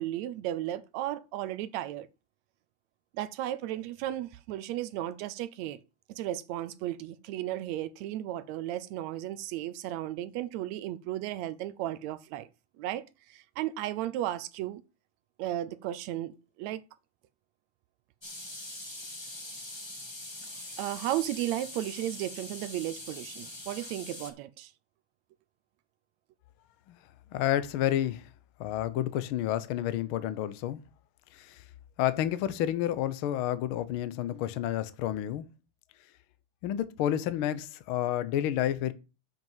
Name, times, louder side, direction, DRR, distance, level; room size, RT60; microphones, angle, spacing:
voice 1, 0.0-2.1 3.1-5.8 6.1-12.5 12.8-14.8 15.4-16.8 20.8-24.7, right 13 dB, 75° right, 1.8 m, -34 dB
sound 1, 18.2-24.3, left 1 dB, 10° left, 1.2 m, -43 dB
voice 2, 27.3-28.2 28.6-30.8 31.3-31.6 32.0-35.4 36.6-38.9, left 12 dB, 85° left, 1.1 m, -30 dB
7.8 x 5.5 x 7.2 m
omnidirectional pair, 3.4 m